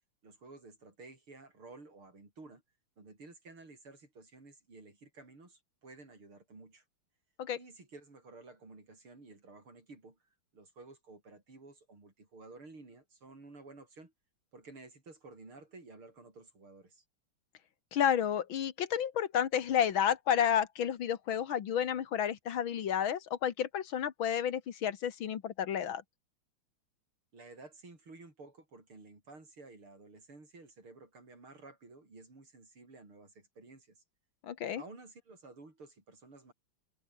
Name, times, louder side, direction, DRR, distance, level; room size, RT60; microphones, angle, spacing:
voice 1, 0.2-2.6 3.0-6.8 7.6-10.2 10.5-14.1 14.5-17.0 27.3-34.0 34.8-36.5, right 3 dB, 80° right, 7.1 m, -53 dB
voice 2, 17.9-26.0 34.4-34.8, left 9 dB, 70° left, 2.1 m, -31 dB
omnidirectional pair, 2.3 m